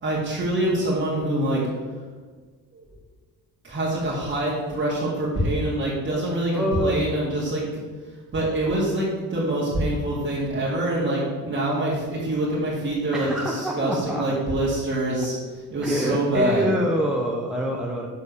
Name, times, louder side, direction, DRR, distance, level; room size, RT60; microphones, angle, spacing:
voice 1, 0.0-1.6 2.7-2.9 3.6-7.6 8.3-15.3 15.7-16.7, right 1 dB, 35° right, -8 dB, 2.2 m, -25 dB
voice 2, 6.5-7.1 13.1-14.3 15.8-18.1, equal, ahead, -1 dB, 0.8 m, -25 dB
7.3 x 4.2 x 6.7 m, 1.4 s
cardioid pair, 105°, 35 cm